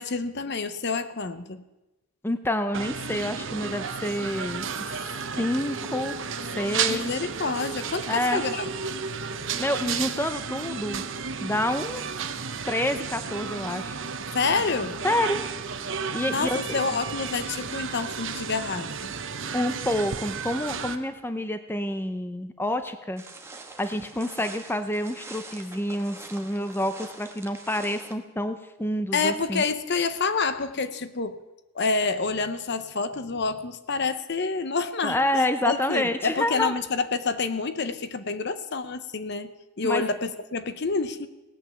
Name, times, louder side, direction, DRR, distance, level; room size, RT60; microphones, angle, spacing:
voice 1, 0.0-1.6 6.9-8.7 14.3-15.0 16.3-19.2 29.1-31.4 31.7-39.5 39.8-41.3, left 4 dB, 50° left, 12 dB, 0.8 m, -28 dB
voice 2, 2.2-5.1 5.4-6.2 6.6-7.1 8.1-8.4 9.6-11.0 11.4-12.0 12.7-14.0 15.0-15.4 16.1-16.8 19.5-23.2 23.8-29.6 35.0-36.7 39.8-40.0, left 1 dB, 10° left, 9 dB, 0.6 m, -28 dB
sound 1, 2.7-21.0, right 6 dB, 60° right, 0.9 m, -33 dB
sound 2, 23.2-28.2, right 3 dB, 10° right, 1.1 m, -44 dB
17.5 x 9.0 x 6.9 m, 1.1 s
head